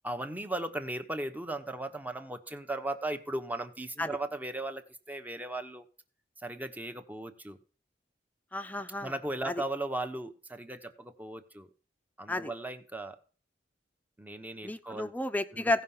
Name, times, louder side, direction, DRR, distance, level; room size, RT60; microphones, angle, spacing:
voice 1, 0.0-4.8 5.1-5.8 6.4-7.6 9.0-11.7 12.2-13.2 14.2-15.1 15.5-15.7, right 2 dB, 10° right, 7 dB, 1.1 m, -37 dB
voice 2, 8.5-9.1 9.4-9.6 12.3-12.5 14.6-15.8, left 2 dB, 10° left, 10 dB, 0.7 m, -32 dB
16.5 x 5.6 x 5.6 m, 0.39 s
head